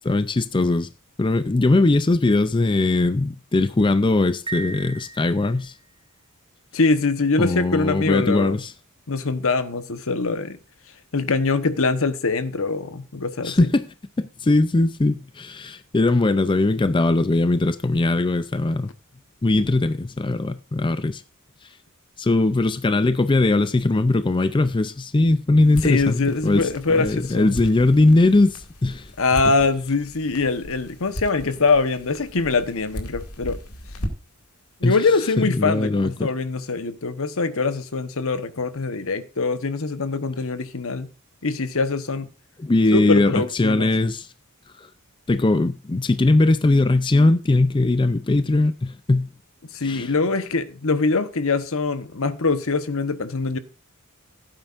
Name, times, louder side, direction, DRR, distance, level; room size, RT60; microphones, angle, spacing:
voice 1, 0.0-0.9 1.2-5.7 7.4-8.7 13.4-13.9 14.2-18.9 19.4-21.2 22.2-29.1 34.8-35.0 35.4-36.3 42.6-44.3 44.8-44.9 45.3-49.3 49.8-50.1, left 2 dB, 20° left, 0.4 m, -20 dB
Piano, 4.5-5.9, right 4 dB, 25° right, 1.9 m, -36 dB
voice 2, 6.7-8.6 9.1-10.6 11.1-13.7 25.8-27.5 29.2-33.6 34.8-41.1 41.4-42.3 42.9-43.9 49.7-53.6, left 3 dB, 65° left, 1.1 m, -23 dB
sound 1, 25.6-34.5, equal, 90° left, 2.3 m, -37 dB
16.0 x 9.0 x 2.5 m
head